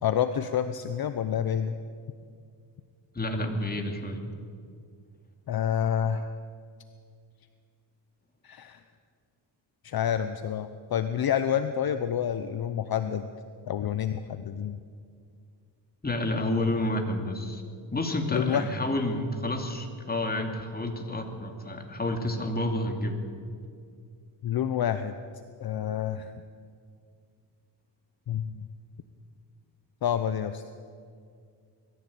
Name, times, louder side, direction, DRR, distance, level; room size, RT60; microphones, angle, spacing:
voice 1, 0.0-1.8 5.5-6.3 8.4-8.8 9.8-13.3 13.6-14.8 18.3-18.7 24.4-25.2 25.6-26.3 28.3-28.6 30.0-30.6, left 9 dB, 50° left, 10 dB, 0.9 m, -28 dB
voice 2, 3.1-4.2 16.0-17.6 17.9-23.2, left 1 dB, 20° left, 4 dB, 2.8 m, -29 dB
21.0 x 14.5 x 8.6 m, 2.2 s
cardioid pair, 100°, 46 cm